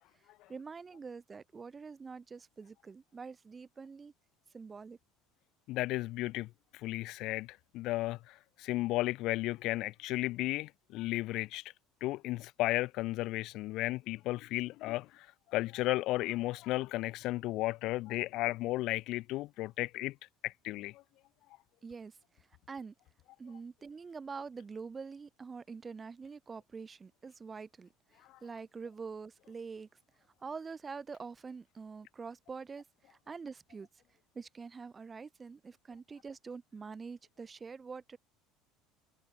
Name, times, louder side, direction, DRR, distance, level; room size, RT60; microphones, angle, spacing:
voice 1, 0.5-4.1 4.5-5.0 21.8-22.9 23.4-29.9 30.4-33.9 34.3-38.2, right 5 dB, 20° right, 0.7 m, -45 dB
voice 2, 5.7-11.6 12.0-20.1 20.4-21.0 28.3-28.4, left 18 dB, 60° left, 0.6 m, -34 dB
supercardioid pair, 125°, 0 cm